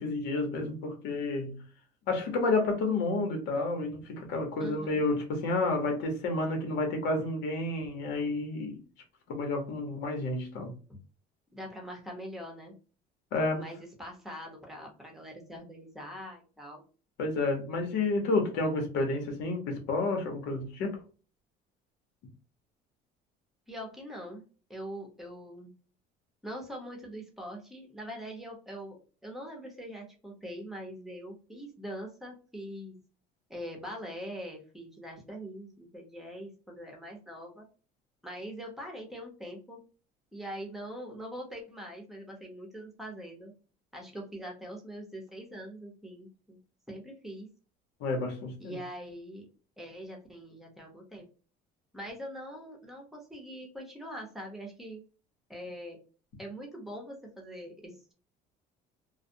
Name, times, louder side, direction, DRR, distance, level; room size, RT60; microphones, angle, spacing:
voice 1, 0.0-1.6 2.1-8.8 9.3-10.7 13.3-13.6 17.2-21.0 48.0-48.8, left 2 dB, 75° left, 0.9 m, -30 dB
voice 2, 4.6-5.0 10.9-11.0 11.5-12.7 13.5-16.8 23.7-24.4 24.7-25.7 26.4-33.0 33.5-37.6 38.2-39.8 40.3-43.5 43.9-46.6 46.9-47.5 48.6-49.5 49.8-51.3 51.9-55.0 55.5-56.0 56.4-58.1, equal, ahead, 0.8 m, -43 dB
2.3 x 2.1 x 2.6 m
cardioid pair, 120°, 19 cm